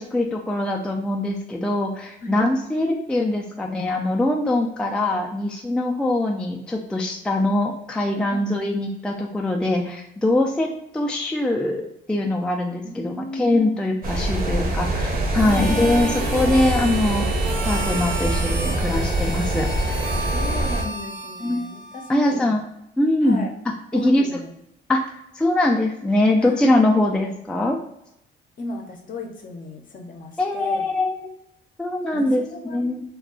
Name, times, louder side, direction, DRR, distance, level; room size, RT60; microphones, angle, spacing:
voice 1, 0.0-17.3 17.6-20.3 20.8-21.0 21.4-21.7 22.1-22.6 23.0-23.4 23.9-24.2 24.9-25.0 25.4-27.8 30.4-31.3 31.8-32.4 32.7-33.0, left 1 dB, 5° left, 0 dB, 0.3 m, -22 dB
voice 2, 4.8-5.2 8.3-8.7 12.8-13.8 15.4-15.7 20.3-22.6 23.2-23.6 23.9-24.5 26.4-26.9 28.6-30.8 32.1-33.0, left 2 dB, 45° left, 3 dB, 0.6 m, -35 dB
sound 1, 14.0-20.8, right 1 dB, 50° right, 0.7 m, -24 dB
Harmonica, 15.3-22.3, right 1 dB, 90° right, 0.8 m, -32 dB
2.3 x 2.3 x 3.6 m, 0.80 s
cardioid pair, 90°, 20 cm